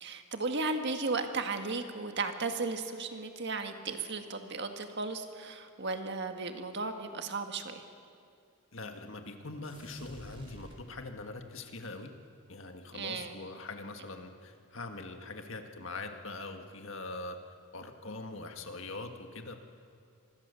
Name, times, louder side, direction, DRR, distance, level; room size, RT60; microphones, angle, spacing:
voice 1, 0.0-7.8 12.9-13.4, right 3 dB, 50° right, 6 dB, 1.7 m, -35 dB
voice 2, 8.7-12.1 12.5-17.4 17.7-19.6, left 2 dB, 60° left, 5 dB, 1.8 m, -42 dB
sound 1, 9.6-11.4, equal, 25° right, 3.7 m, -52 dB
26.0 x 20.5 x 7.0 m, 2.4 s
head